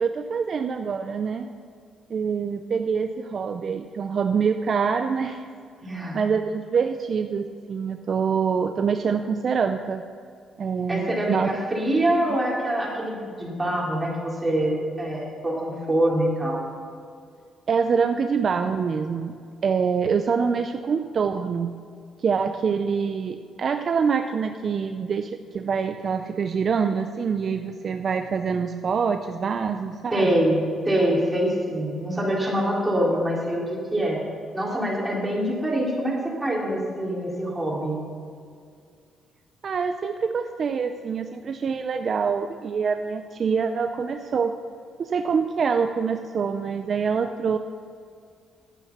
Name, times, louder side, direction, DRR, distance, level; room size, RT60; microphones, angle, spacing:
voice 1, 0.0-1.5 2.1-5.4 6.1-10.0 10.6-11.6 17.7-19.4 19.6-21.7 22.2-30.3 39.6-44.5 45.0-47.6, right 6 dB, 50° right, 7 dB, 0.5 m, -25 dB
voice 2, 5.8-6.2 10.9-16.6 30.1-33.6 33.9-34.2 34.5-38.0, right 1 dB, 15° right, -4 dB, 3.6 m, -25 dB
11.0 x 9.1 x 6.0 m, 2.2 s
cardioid pair, 90°, 0 cm